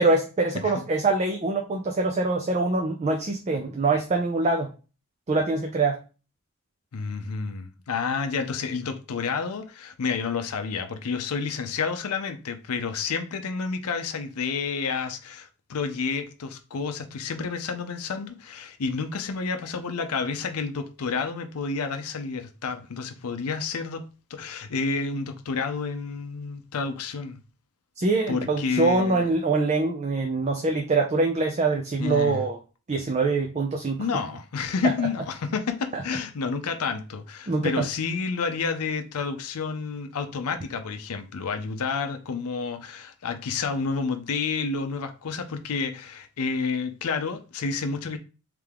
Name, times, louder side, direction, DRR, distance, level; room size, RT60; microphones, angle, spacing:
voice 1, 0.0-4.7 5.3-6.0 28.0-32.6 32.9-34.0 35.9-36.0 37.5-37.9, right 3 dB, 30° right, 0.4 m, -24 dB
voice 2, 6.9-24.0 24.3-27.4 28.3-29.3 32.0-32.4 34.0-48.2, left 5 dB, 75° left, 0.5 m, -30 dB
3.6 x 3.3 x 3.3 m
head